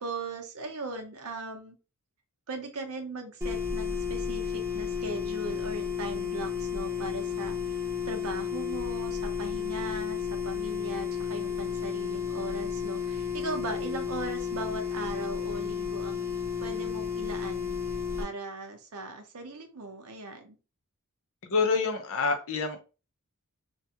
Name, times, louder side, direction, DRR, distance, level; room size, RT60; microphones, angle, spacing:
voice 1, 0.0-1.8 2.5-17.8 18.2-20.6, right 3 dB, 80° right, 4 dB, 0.7 m, -39 dB
sound 1, 3.4-18.2, left 7 dB, 15° right, 0.4 m, -32 dB
voice 2, 21.4-22.8, left 4 dB, 65° left, 6 dB, 0.6 m, -27 dB
2.4 x 2.2 x 2.7 m, 0.33 s
head